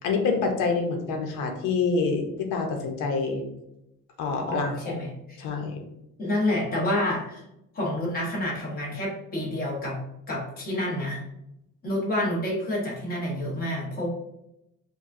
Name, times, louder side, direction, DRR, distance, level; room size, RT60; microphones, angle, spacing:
voice 1, 0.0-3.4 4.2-5.0 5.4-5.8, left 4 dB, 90° left, 3 dB, 0.9 m, -27 dB
voice 2, 4.5-5.4 6.2-7.4 7.7-10.0 10.3-11.2 11.8-14.1, left 1 dB, 30° left, -3 dB, 1.1 m, -28 dB
5.2 x 2.3 x 2.6 m, 0.83 s
cardioid pair, 175°, 31 cm